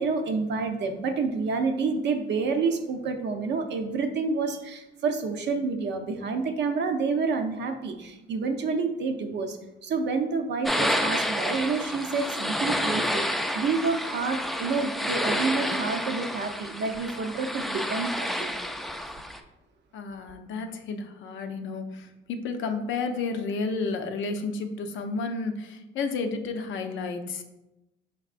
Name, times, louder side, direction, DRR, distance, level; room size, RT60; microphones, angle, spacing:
voice 1, 0.0-9.6 9.8-18.5, right 4 dB, 60° right, 6 dB, 0.6 m, -28 dB
sound 1, 10.6-19.4, equal, ahead, 0.3 m, -29 dB
voice 2, 19.9-27.4, left 4 dB, 75° left, 6 dB, 0.5 m, -31 dB
4.6 x 3.5 x 2.4 m, 0.96 s
cardioid pair, 90°, 20 cm